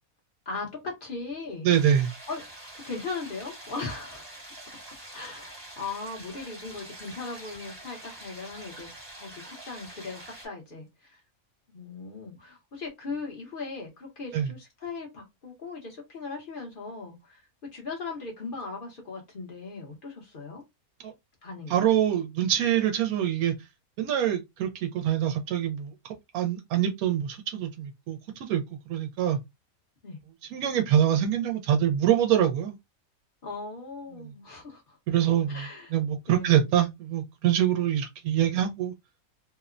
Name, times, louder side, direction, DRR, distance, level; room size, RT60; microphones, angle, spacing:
voice 1, 0.5-1.7 2.3-2.4 2.7-4.2 5.1-8.9 9.2-11.2 11.7-17.4 17.7-20.6 21.4-21.8 30.0-30.2 33.4-35.0 35.5-35.9 36.3-36.6, left 4 dB, 45° left, 0.9 m, -38 dB
voice 2, 1.6-2.1 14.3-14.5 21.0-21.1 21.7-23.5 24.0-25.9 26.3-28.2 28.5-28.6 28.9-29.4 30.5-32.7 35.1-38.9, right 10 dB, 90° right, 1.1 m, -25 dB
sound 1, 1.7-10.5, right 1 dB, 20° right, 0.8 m, -45 dB
2.8 x 2.1 x 2.4 m
omnidirectional pair, 1.5 m